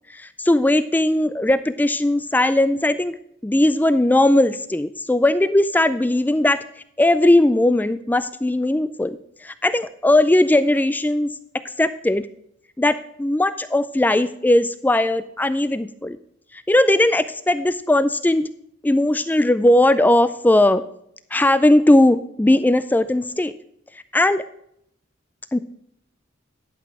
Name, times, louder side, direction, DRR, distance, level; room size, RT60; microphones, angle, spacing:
voice 1, 0.1-3.1 3.4-6.6 7.0-9.2 9.4-11.3 11.8-12.3 12.8-16.2 16.7-18.4 18.8-20.8 21.3-23.5 24.1-24.4 25.5-25.6, left 1 dB, 10° left, 13 dB, 0.3 m, -18 dB
11.0 x 5.9 x 4.9 m, 0.71 s
head